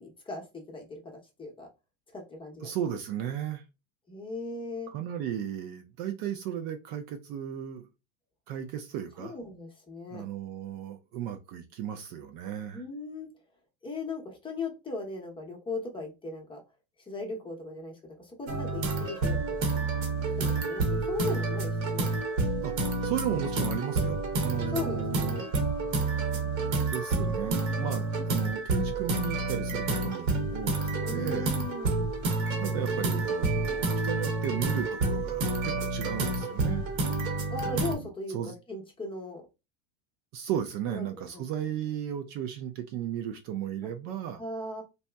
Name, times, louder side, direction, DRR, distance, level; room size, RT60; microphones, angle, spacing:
voice 1, 0.0-1.7 2.1-2.7 4.1-4.9 9.2-10.3 12.6-13.3 13.8-16.6 17.1-22.1 24.7-25.5 30.9-32.1 37.5-39.4 40.9-41.4 43.8-43.9 44.4-44.8, left 3 dB, 10° left, 0.7 m, -38 dB
voice 2, 2.6-3.6 4.9-7.9 8.5-9.3 10.1-12.8 22.6-22.7 23.0-25.4 26.9-31.5 32.6-36.9 37.6-38.5 40.3-44.4, right 10 dB, 45° right, 0.5 m, -35 dB
sound 1, 18.5-37.9, right 3 dB, 70° right, 1.1 m, -29 dB
2.8 x 2.1 x 3.3 m
supercardioid pair, 130°, 41 cm